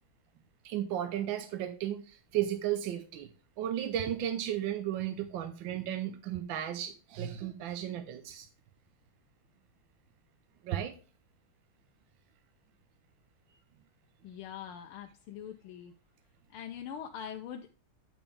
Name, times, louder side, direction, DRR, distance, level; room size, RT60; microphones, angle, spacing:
voice 1, 0.6-3.3 3.6-8.5 10.6-11.0, right 11 dB, 70° right, 8 dB, 1.3 m, -34 dB
voice 2, 14.2-15.9 16.5-17.7, left 8 dB, 80° left, 4 dB, 1.6 m, -43 dB
9.1 x 6.2 x 3.4 m, 0.36 s
omnidirectional pair, 2.4 m